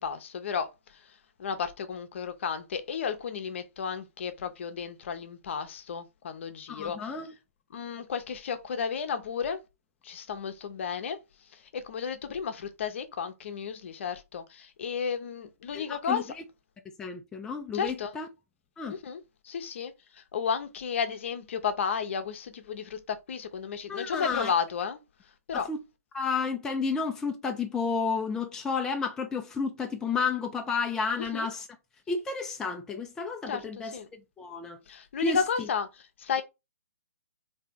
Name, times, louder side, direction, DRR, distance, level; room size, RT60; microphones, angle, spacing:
voice 1, 0.0-7.1 7.7-9.6 10.0-11.2 11.5-16.2 17.7-18.1 18.9-25.0 25.5-25.7 31.2-31.5 33.5-34.1 34.9-36.4, left 6 dB, 50° left, 0.7 m, -33 dB
voice 2, 6.7-7.3 15.7-16.4 17.0-18.3 18.8-19.0 23.9-24.5 25.5-25.8 26.1-31.7 32.1-33.9 34.4-34.8 35.2-35.7, left 4 dB, 5° left, 0.4 m, -31 dB
3.3 x 2.8 x 3.6 m
figure-of-eight pair, 135°, 8 cm